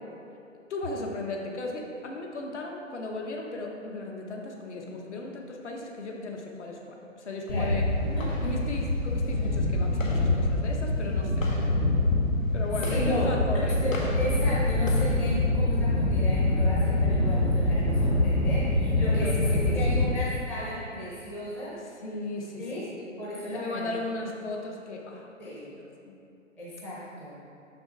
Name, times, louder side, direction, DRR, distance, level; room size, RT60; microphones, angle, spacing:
voice 1, 0.7-7.9 8.4-11.5 12.0-12.1 12.5-13.9 19.1-20.1 22.0-23.1 23.5-26.1, left 2 dB, 60° left, 1 dB, 1.1 m, -36 dB
sound 1, 7.5-20.1, left 2 dB, 80° left, 1.3 m, -25 dB
voice 2, 7.5-8.5 9.2-9.5 12.9-21.8 22.6-22.8 23.2-23.9 25.4-25.7 26.6-27.4, left 1 dB, 5° left, -9 dB, 0.5 m, -34 dB
6.1 x 5.9 x 3.8 m, 2.6 s
figure-of-eight pair, 130°, 39 cm